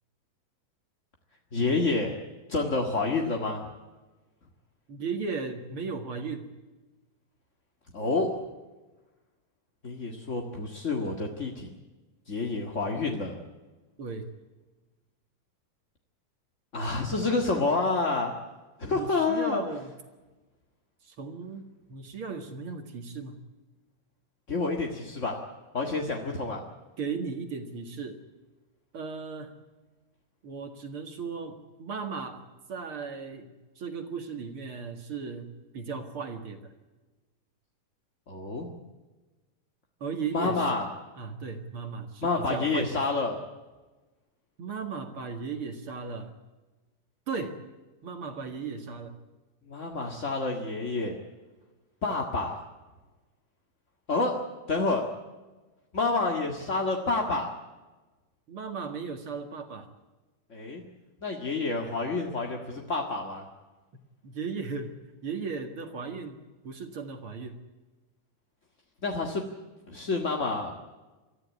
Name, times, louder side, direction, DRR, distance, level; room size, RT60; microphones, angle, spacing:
voice 1, 1.5-2.1 2.5-3.7 7.9-8.3 9.8-11.7 12.3-13.4 16.7-18.3 18.8-19.6 24.5-25.4 25.7-26.6 38.3-38.7 40.3-40.9 42.2-43.4 49.7-51.2 52.0-52.6 54.1-54.3 54.7-55.1 55.9-57.5 60.5-60.8 61.2-63.4 69.0-69.4 69.9-70.9, left 3 dB, 30° left, 1 dB, 1.5 m, -28 dB
voice 2, 4.9-6.5 14.0-14.3 18.9-19.9 21.0-23.4 27.0-28.2 28.9-29.5 30.4-32.4 32.7-33.5 33.8-36.7 40.0-40.7 41.2-43.0 44.6-46.3 47.3-47.6 48.0-49.2 58.5-59.9 64.2-65.0 65.2-66.4 66.6-67.6, right 5 dB, 45° right, 6 dB, 2.4 m, -36 dB
24.0 x 14.0 x 9.7 m, 1.2 s
omnidirectional pair, 3.7 m